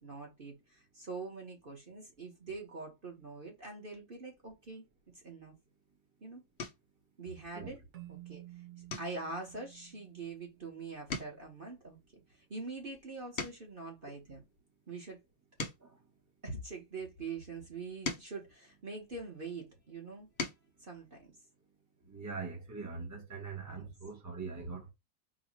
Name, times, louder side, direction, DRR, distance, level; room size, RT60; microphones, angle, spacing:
voice 1, 0.0-5.5 6.2-6.4 7.2-7.8 8.1-8.4 9.0-14.4 14.9-15.2 16.4-20.3 20.8-21.4 23.7-23.9, right 3 dB, 30° right, 1.4 m, -44 dB
sound 1, 5.7-6.0 6.5-7.0 7.5-7.8 8.1-8.3 8.8-10.7 11.0-13.9 14.5-17.0 17.6-19.5 20.0-20.7 22.1-22.2 22.5-22.7, left 4 dB, 40° left, 0.9 m, -44 dB
Keyboard (musical), 7.9-11.2, right 16 dB, 60° right, 1.2 m, -52 dB
voice 2, 22.1-24.9, right 4 dB, 10° right, 1.1 m, -42 dB
4.1 x 2.7 x 4.6 m
omnidirectional pair, 1.9 m